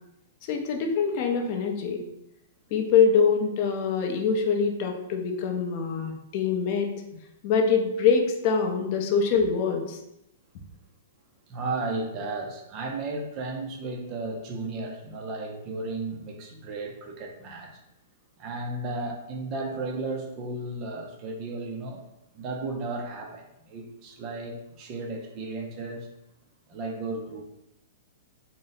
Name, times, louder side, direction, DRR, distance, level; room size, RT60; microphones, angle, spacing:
voice 1, 0.5-2.0 2.7-6.9 7.4-10.0, left 5 dB, 35° left, 2 dB, 0.5 m, -24 dB
voice 2, 11.5-17.8 18.4-22.0 22.3-26.1 26.7-27.5, right 2 dB, 25° right, 2 dB, 0.5 m, -34 dB
3.7 x 2.0 x 4.0 m, 0.86 s
hypercardioid pair, 165°, 0 cm